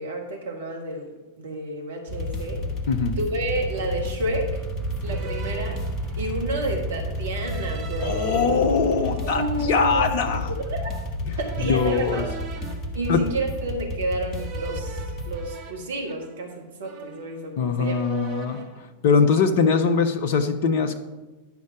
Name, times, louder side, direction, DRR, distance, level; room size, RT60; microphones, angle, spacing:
voice 1, 0.0-2.6 3.2-4.6 5.0-5.8 6.2-8.4 9.2-11.0 11.4-12.4 12.9-18.1, right 1 dB, 65° right, 3 dB, 1.2 m, -30 dB
sound 1, 2.1-15.4, equal, 30° left, 1.1 m, -31 dB
sound 2, 2.6-2.9 3.7-4.3 5.0-6.5 7.3-8.5 9.0-10.6 11.4-13.7 14.3-16.6 16.8-17.6 17.8-18.8, right 3 dB, 40° right, 1.0 m, -42 dB
voice 2, 2.9-3.2 8.0-10.5 11.3-11.4 11.6-12.2 13.1-13.2 17.6-18.6 19.0-21.0, left 5 dB, 50° left, 7 dB, 0.6 m, -22 dB
sound 3, 4.4-9.5, right 3 dB, 10° right, 1.7 m, -39 dB
10.5 x 5.2 x 5.0 m, 1.2 s
figure-of-eight pair, 90°, 0 cm